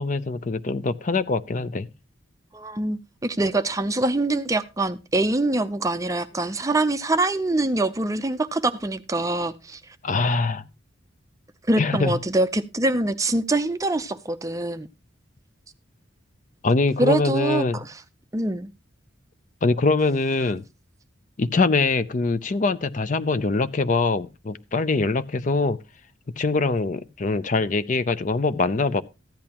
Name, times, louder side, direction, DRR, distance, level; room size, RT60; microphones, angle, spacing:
voice 1, 0.0-1.9 10.0-10.6 11.8-12.1 16.6-17.8 19.6-20.6 21.4-25.8 26.4-29.0, left 3 dB, 40° left, 0.5 m, -23 dB
voice 2, 2.5-10.0 11.7-14.9 17.0-18.0 18.3-18.7, right 2 dB, 15° right, 0.5 m, -24 dB
14.5 x 10.5 x 2.9 m
head